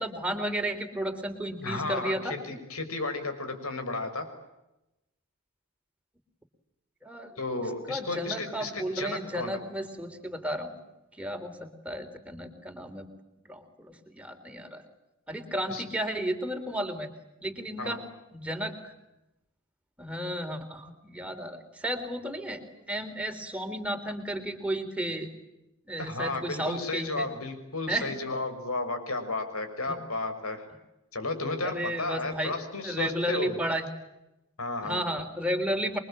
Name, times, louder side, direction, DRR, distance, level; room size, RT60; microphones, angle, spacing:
voice 1, 0.0-2.4 7.0-7.3 7.9-10.7 11.2-13.1 13.5-14.8 15.3-17.1 17.4-18.0 18.3-18.9 20.0-22.6 22.9-25.3 25.9-27.3 27.9-28.1 29.9-30.0 31.6-32.6 32.8-33.9 34.8-36.0, right 1 dB, 5° right, 5 dB, 3.7 m, -33 dB
voice 2, 1.6-4.3 7.4-9.6 15.7-15.8 17.8-18.0 26.0-30.6 31.1-33.5 34.6-35.0, left 2 dB, 75° left, 8 dB, 6.2 m, -33 dB
28.0 x 23.5 x 9.0 m, 0.93 s
head